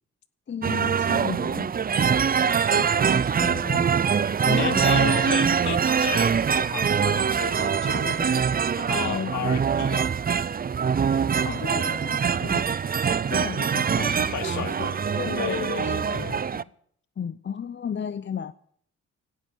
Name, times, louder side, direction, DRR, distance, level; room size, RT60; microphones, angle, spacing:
voice 1, 0.5-1.7 2.6-5.6 7.9-8.5 9.0-9.5 11.4-12.8 13.1-16.7 17.2-18.5, left 7 dB, 40° left, 0.7 m, -35 dB
sound 1, 0.6-16.6, right 7 dB, 30° right, 0.5 m, -24 dB
voice 2, 4.6-8.2 8.8-10.1 14.0-16.4, left 9 dB, 70° left, 1.2 m, -34 dB
17.0 x 12.0 x 5.7 m
supercardioid pair, 60°, 30 cm